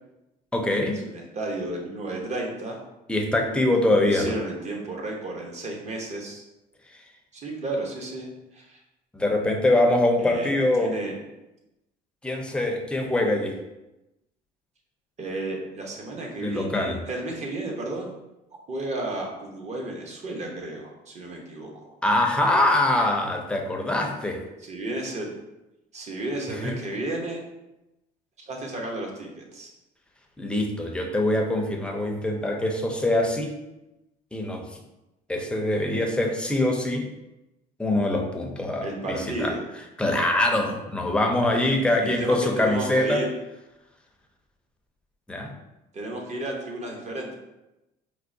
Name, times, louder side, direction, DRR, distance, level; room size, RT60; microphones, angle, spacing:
voice 1, 0.5-1.0 3.1-4.4 9.1-10.9 12.2-13.5 16.4-17.0 22.0-24.4 26.5-26.8 30.4-33.5 34.3-34.6 35.3-37.1 37.8-39.5 40.0-43.2 45.3-45.5, left 1 dB, 5° left, 2 dB, 0.5 m, -23 dB
voice 2, 1.0-2.8 4.0-6.4 7.3-8.8 10.2-10.5 10.8-11.1 15.2-18.1 18.7-21.9 24.6-25.3 25.9-27.4 28.4-29.7 38.8-39.6 42.0-43.3 45.9-47.3, right 2 dB, 40° right, 0 dB, 0.9 m, -33 dB
4.5 x 2.1 x 2.6 m, 0.96 s
supercardioid pair, 95°, 17 cm